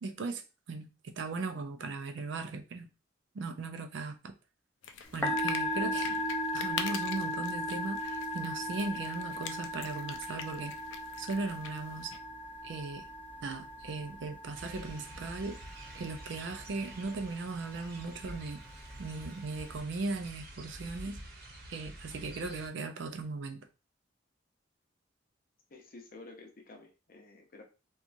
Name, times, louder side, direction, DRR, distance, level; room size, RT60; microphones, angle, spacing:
voice 1, 0.0-2.9 3.3-4.3 5.1-6.1 6.5-10.8 11.2-12.1 12.6-13.0 13.4-15.6 15.9-18.6 19.0-21.2 21.7-23.7, right 3 dB, 70° right, 0.4 m, -38 dB
sound 1, 4.8-12.2, left 6 dB, 85° left, 0.4 m, -44 dB
Musical instrument, 5.0-19.8, left 1 dB, 10° left, 0.5 m, -38 dB
sound 2, 14.5-22.7, right 1 dB, 55° right, 0.9 m, -48 dB
voice 2, 25.7-27.6, left 2 dB, 50° left, 0.7 m, -51 dB
2.8 x 2.3 x 2.5 m
head